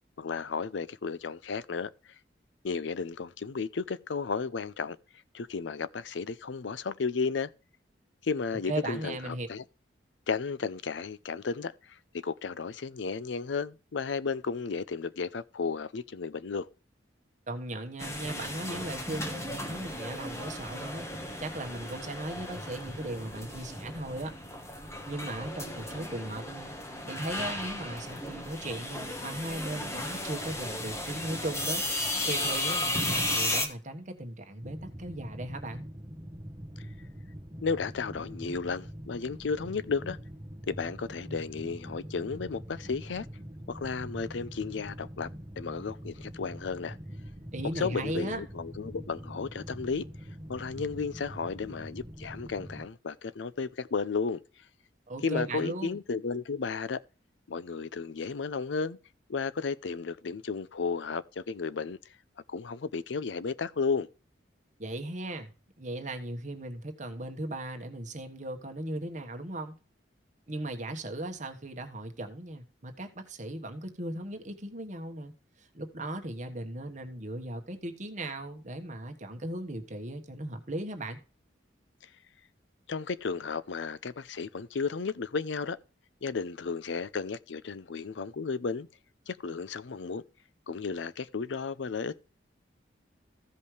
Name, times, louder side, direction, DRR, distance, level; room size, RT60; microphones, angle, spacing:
voice 1, 0.2-1.9 2.6-5.0 5.3-7.5 8.2-9.6 10.3-16.7 37.6-40.2 40.7-43.3 43.7-45.3 45.6-47.0 47.8-50.0 50.5-54.4 55.2-57.0 57.5-59.0 59.3-62.0 62.5-64.1 82.9-85.8 86.2-88.9 89.3-90.2 90.7-92.2, left 5 dB, 80° left, 0.5 m, -33 dB
voice 2, 8.7-9.5 17.5-21.1 21.4-24.3 25.1-26.7 27.0-31.8 32.3-35.8 47.5-48.4 55.1-56.0 64.8-65.5 65.8-69.8 70.5-75.3 75.6-81.2, right 1 dB, 40° right, 1.4 m, -37 dB
sound 1, 18.0-33.7, left 1 dB, 15° left, 1.3 m, -35 dB
sound 2, 34.6-52.9, equal, 20° right, 1.2 m, -44 dB
15.0 x 5.4 x 3.3 m
head